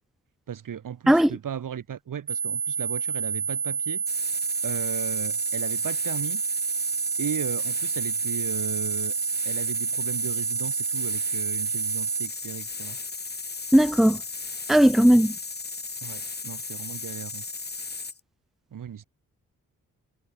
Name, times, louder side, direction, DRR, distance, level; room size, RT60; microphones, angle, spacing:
voice 1, 0.5-4.0 4.6-6.4 7.2-9.2 9.5-13.0 16.0-17.4 18.7-19.0, right 9 dB, 65° right, 2.3 m, -36 dB
sound 1, 2.3-12.3, right 6 dB, 35° right, 0.8 m, -29 dB
sound 2, 4.1-18.2, left 4 dB, 30° left, 2.0 m, -36 dB
voice 2, 13.7-14.2 14.7-15.3, equal, ahead, 0.8 m, -17 dB
supercardioid pair, 50°, 35 cm